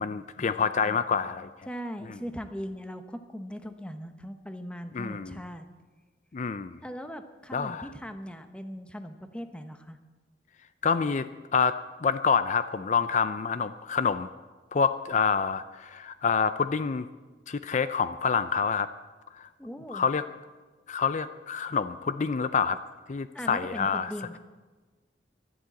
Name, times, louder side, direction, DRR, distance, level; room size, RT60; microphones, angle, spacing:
voice 1, 0.0-1.5 2.0-2.2 4.9-5.4 6.3-6.8 7.5-7.9 10.8-14.3 14.7-17.1 17.5-18.9 19.4-19.5 19.9-20.2 20.9-22.8 23.1-24.1, left 6 dB, 40° left, 12 dB, 0.4 m, -27 dB
voice 2, 1.7-5.7 6.8-10.0 19.6-20.1 23.3-24.4, equal, 5° left, 8 dB, 0.8 m, -39 dB
11.5 x 11.5 x 8.3 m, 1.3 s
head